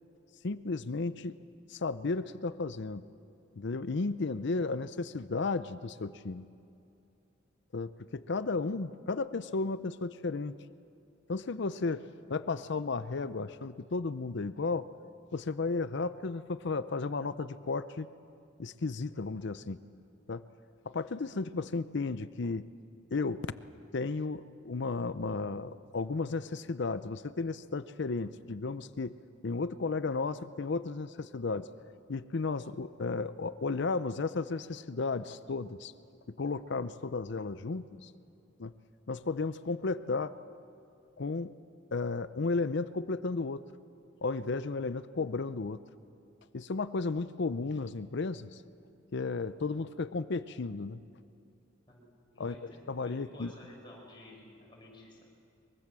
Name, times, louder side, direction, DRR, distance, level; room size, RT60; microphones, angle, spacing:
voice 1, 0.4-1.4 1.7-3.0 3.6-6.5 7.7-10.5 11.3-12.0 12.3-14.9 15.3-18.1 18.6-19.8 20.3-20.4 20.9-22.7 23.1-23.4 23.9-29.2 29.4-31.7 32.1-35.9 36.4-38.1 38.6-38.7 39.1-40.3 41.2-41.5 41.9-43.6 44.2-45.8 46.5-48.6 49.1-51.0 52.4-52.5 52.9-53.5, left 3 dB, 60° left, 14 dB, 0.6 m, -34 dB
voice 2, 52.3-55.2, left 1 dB, 25° left, -2 dB, 6.2 m, -53 dB
23.0 x 23.0 x 7.5 m, 2.6 s
head